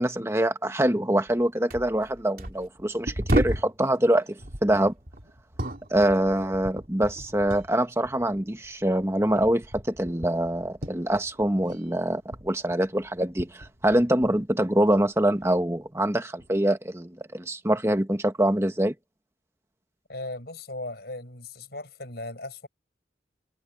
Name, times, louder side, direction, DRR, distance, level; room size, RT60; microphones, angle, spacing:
voice 1, 0.0-4.9 5.9-18.9, right 1 dB, 15° right, 1.4 m, -24 dB
sound 1, 1.3-1.4 1.7-3.8 4.4-7.8 8.0-11.9 12.1-14.4 14.9-15.6 16.4-16.6, right 1 dB, 50° right, 3.0 m, -34 dB
voice 2, 20.1-22.7, left 2 dB, 60° left, 7.6 m, -37 dB
head